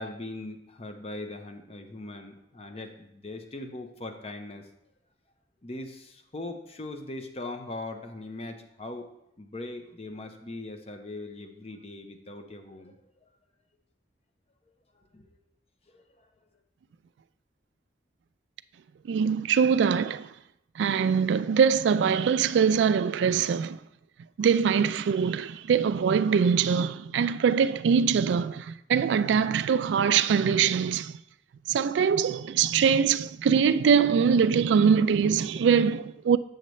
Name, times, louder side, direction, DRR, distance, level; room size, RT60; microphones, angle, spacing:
voice 1, 0.0-4.7 5.6-9.1 9.4-13.3 14.9-15.3 15.9-16.3, left 2 dB, 35° left, 0.6 m, -40 dB
voice 2, 19.1-20.3 20.8-23.8 24.4-31.1 31.7-36.4, right 6 dB, 85° right, 0.3 m, -23 dB
7.7 x 6.6 x 3.1 m
head